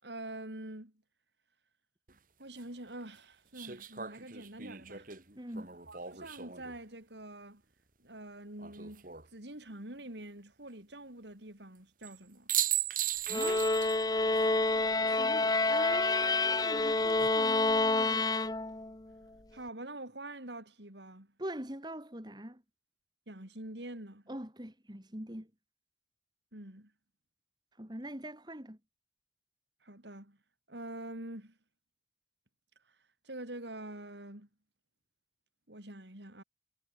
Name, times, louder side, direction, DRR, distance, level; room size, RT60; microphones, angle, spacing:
voice 1, 0.0-0.9 2.4-5.1 5.9-7.6 8.0-12.5 19.5-21.3 23.3-24.2 26.5-26.9 29.8-30.4 30.7-31.6 33.2-34.5 35.7-36.4, right 1 dB, 75° right, 5.3 m, -45 dB
sound 1, 2.1-2.2 3.5-6.8 8.6-9.3 12.0-12.2 12.5-14.0 14.4-14.5 16.8-17.3, right 11 dB, 50° right, 2.8 m, -37 dB
voice 2, 5.4-5.7 13.1-13.7 15.2-18.3 21.4-22.6 24.3-25.5 27.8-28.8, right 1 dB, 25° right, 3.1 m, -43 dB
sound 2, 13.3-19.0, left 3 dB, 20° left, 0.8 m, -28 dB
head